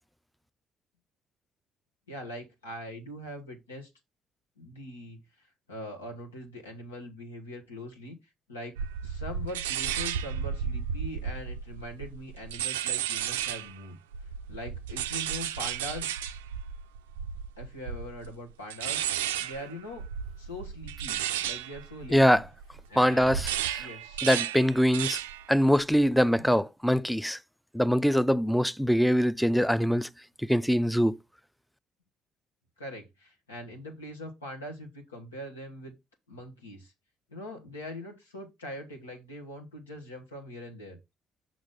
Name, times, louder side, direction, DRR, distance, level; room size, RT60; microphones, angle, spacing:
voice 1, 2.1-3.9 4.6-8.1 8.5-8.8 9.0-14.0 14.5-16.2 17.6-19.0 19.4-20.1 20.4-22.4 22.9-23.4 23.8-24.3 26.3-26.6 32.8-36.0 36.3-36.9 37.3-41.0, left 1 dB, 90° left, 1.4 m, -42 dB
sound 1, 8.8-13.8 14.1-22.8 23.1-25.5 25.8-26.2, right 9 dB, 80° right, 0.4 m, -33 dB
voice 2, 22.1-22.4 23.0-23.9 24.2-25.2 25.5-27.4 27.7-30.1 30.5-31.2, equal, ahead, 0.4 m, -23 dB
6.2 x 5.9 x 3.7 m
hypercardioid pair, 45°, 0 cm